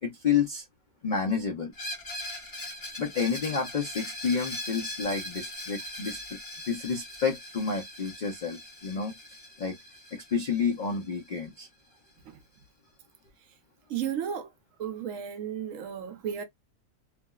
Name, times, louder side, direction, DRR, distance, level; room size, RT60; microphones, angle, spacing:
voice 1, 0.0-0.6 1.0-1.7 2.6-2.7 3.0-6.4 6.7-9.8 10.1-11.7, left 6 dB, 70° left, 0.4 m, -30 dB
Screech, 1.7-11.4, left 1 dB, 25° left, 1.0 m, -40 dB
voice 2, 13.9-14.5 14.8-16.4, right 8 dB, 65° right, 0.9 m, -33 dB
3.3 x 2.0 x 2.2 m
omnidirectional pair, 1.6 m